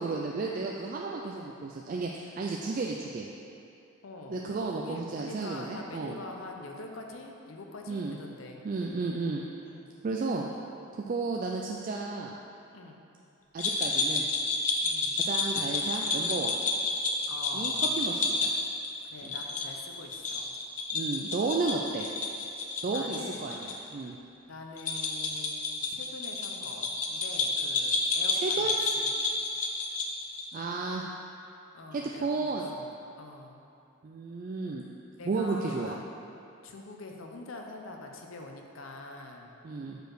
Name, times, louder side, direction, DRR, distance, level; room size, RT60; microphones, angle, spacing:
voice 1, 0.0-3.3 4.3-6.2 7.9-8.2 8.6-9.4 10.0-10.5 10.9-12.4 13.5-14.3 15.1-16.6 17.5-18.5 19.2-19.3 20.9-22.1 22.8-24.2 28.3-28.8 30.5-31.1 31.9-32.7 34.0-34.8 35.3-36.0 39.6-40.0, right 3 dB, 40° right, -1 dB, 0.3 m, -33 dB
voice 2, 4.0-8.6 9.6-9.9 12.7-13.0 14.8-15.1 17.2-18.0 19.0-20.6 21.2-21.3 22.9-23.5 24.5-29.1 31.7-32.9 33.2-33.6 35.2-36.1 36.6-39.5, left 2 dB, 75° left, 2 dB, 0.7 m, -44 dB
sound 1, 13.6-23.8 24.0-24.1 24.8-30.5, left 3 dB, 35° left, 0.5 m, -30 dB
5.1 x 4.6 x 6.1 m, 2.6 s
head